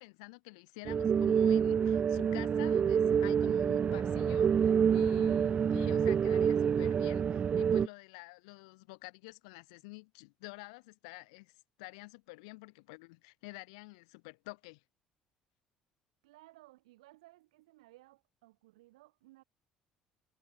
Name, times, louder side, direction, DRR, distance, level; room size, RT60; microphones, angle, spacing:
voice 1, 0.0-11.5 11.8-14.8, left 27 dB, 70° left, 3.6 m, -49 dB
sound 1, 0.9-7.9, right 7 dB, 35° right, 0.3 m, -27 dB
voice 2, 16.2-19.4, right 19 dB, 75° right, 4.1 m, -60 dB
figure-of-eight pair, 55°, 4 cm